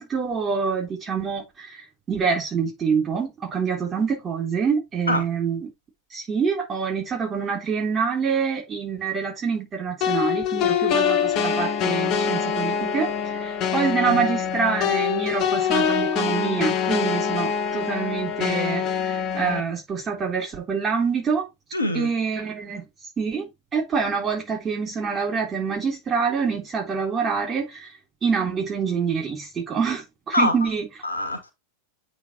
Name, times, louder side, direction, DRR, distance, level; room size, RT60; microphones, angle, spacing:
voice 1, 0.0-5.7 6.1-21.5 21.9-22.9 23.2-27.9 28.2-30.9, right 6 dB, 20° right, 3.8 m, -26 dB
sound 1, 10.0-19.6, left 7 dB, 35° left, 1.1 m, -24 dB
voice 2, 21.7-22.1 30.3-30.6 31.0-31.5, left 1 dB, 80° left, 1.9 m, -24 dB
8.9 x 3.8 x 3.2 m
figure-of-eight pair, 90°, 0 cm